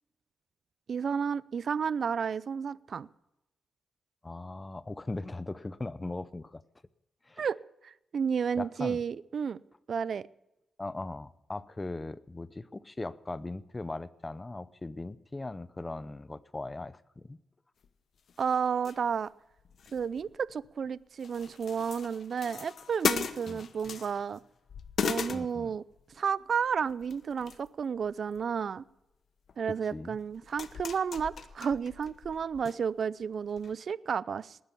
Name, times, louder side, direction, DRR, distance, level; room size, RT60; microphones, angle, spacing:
voice 1, 0.9-3.1 7.4-7.6 7.8-9.6 9.9-10.3 18.4-19.3 19.9-24.4 25.0-25.8 26.2-28.8 29.6-34.6, right 6 dB, 60° right, 20 dB, 0.5 m, -32 dB
voice 2, 4.2-6.6 7.2-7.5 8.5-9.0 10.8-17.4 23.5-23.6 25.3-25.7 29.7-30.2, left 2 dB, 20° left, 17 dB, 0.8 m, -39 dB
sound 1, 17.8-17.9 18.3-19.3 19.6-20.9 21.2-24.4 24.7-26.1 26.9-27.7 28.0-28.5 29.5-29.6 30.2-32.7 33.0-33.1 33.6-33.7, left 6 dB, 65° left, 1.1 m, -37 dB
19.5 x 10.5 x 7.0 m, 0.90 s
cardioid pair, 85°, 0 cm